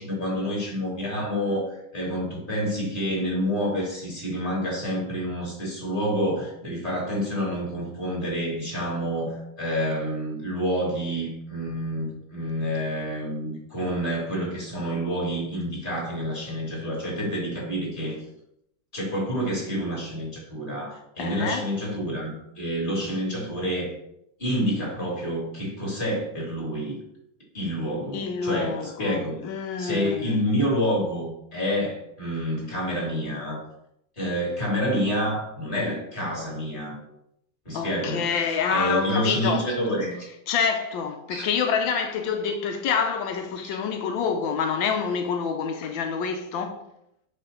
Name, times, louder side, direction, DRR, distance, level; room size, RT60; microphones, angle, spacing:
voice 1, 0.0-18.2 18.9-23.9 24.4-27.0 27.5-29.4 29.8-33.6 34.2-37.0 37.6-40.1 41.3-41.4, equal, 25° left, 3.1 m, -28 dB
voice 2, 21.2-21.6 28.1-30.4 37.7-39.7 40.5-46.8, left 6 dB, 85° left, 1.5 m, -27 dB
9.6 x 3.4 x 5.7 m
omnidirectional pair, 2.0 m